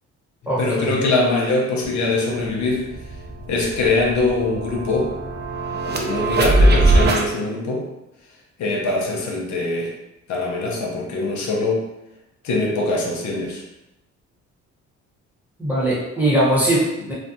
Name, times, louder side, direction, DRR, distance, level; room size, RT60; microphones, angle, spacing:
voice 1, 0.6-2.9 3.5-5.3 5.8-7.9 8.6-9.9 10.3-11.9 12.4-13.6, left 2 dB, 70° left, -2 dB, 0.7 m, -22 dB
sound 1, 1.8-1.9 2.3-7.3, right 2 dB, 35° right, 0.5 m, -21 dB
voice 2, 15.6-17.1, right 1 dB, 5° right, -7 dB, 0.9 m, -20 dB
2.4 x 2.1 x 2.7 m, 0.93 s
cardioid pair, 90°, 30 cm